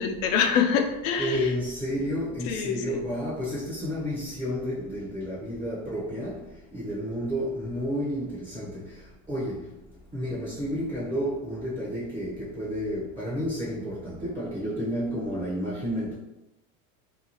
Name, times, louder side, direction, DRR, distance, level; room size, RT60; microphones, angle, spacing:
voice 1, 0.0-1.5 2.5-3.0, left 7 dB, 70° left, 5 dB, 0.5 m, -25 dB
voice 2, 1.2-9.0 9.3-9.7 10.1-16.1, equal, 10° right, -8 dB, 0.6 m, -31 dB
2.8 x 2.3 x 2.7 m, 0.97 s
supercardioid pair, 140°, 40 cm